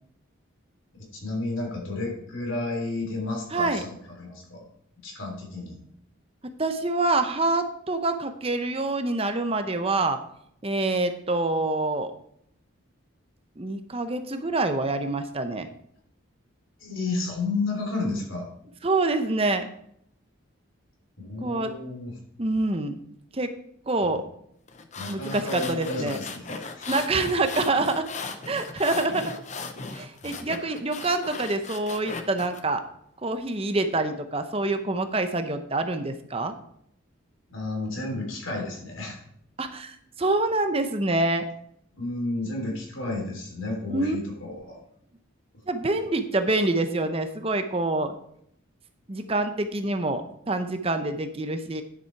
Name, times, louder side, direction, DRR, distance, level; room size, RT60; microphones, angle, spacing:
voice 1, 1.1-3.8 4.2-4.6 5.0-5.8 16.8-18.5 21.2-22.1 24.0-24.1 25.0-26.9 30.2-30.5 37.5-39.2 42.0-44.8, left 2 dB, 70° left, 0 dB, 3.5 m, -32 dB
voice 2, 3.5-3.8 6.6-10.2 10.6-12.1 13.6-15.7 18.8-19.7 21.4-21.7 22.4-23.0 23.3-23.5 23.9-24.2 25.1-26.2 26.9-28.1 28.5-29.3 29.9-32.8 33.2-36.5 39.6-41.4 43.9-44.2 45.7-48.1 49.1-51.8, right 2 dB, 30° right, 8 dB, 0.7 m, -26 dB
sound 1, 24.7-32.6, left 4 dB, 35° left, 0.8 m, -38 dB
10.0 x 7.7 x 4.6 m, 0.70 s
head